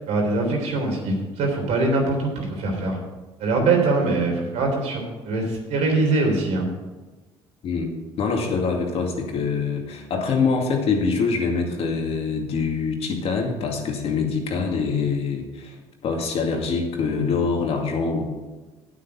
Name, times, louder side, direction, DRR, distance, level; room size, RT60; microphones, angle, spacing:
voice 1, 0.1-3.0 3.4-6.7, right 3 dB, 70° right, 1 dB, 3.4 m, -23 dB
voice 2, 8.2-15.8 16.0-18.2, left 5 dB, 60° left, 2 dB, 2.3 m, -24 dB
9.0 x 8.5 x 5.8 m, 1.2 s
supercardioid pair, 80°, 12 cm